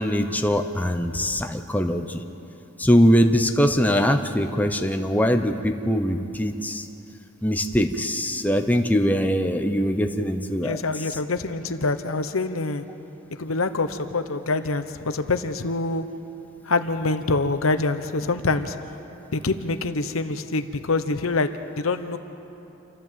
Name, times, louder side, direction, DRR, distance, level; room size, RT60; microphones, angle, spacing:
voice 1, 0.0-2.2 2.8-6.8 7.4-10.8, equal, 10° left, 5 dB, 0.8 m, -22 dB
voice 2, 10.6-12.8 13.4-16.0 16.7-18.8 19.3-22.2, left 3 dB, 85° left, 9 dB, 1.0 m, -25 dB
28.0 x 13.5 x 7.5 m, 2.9 s
head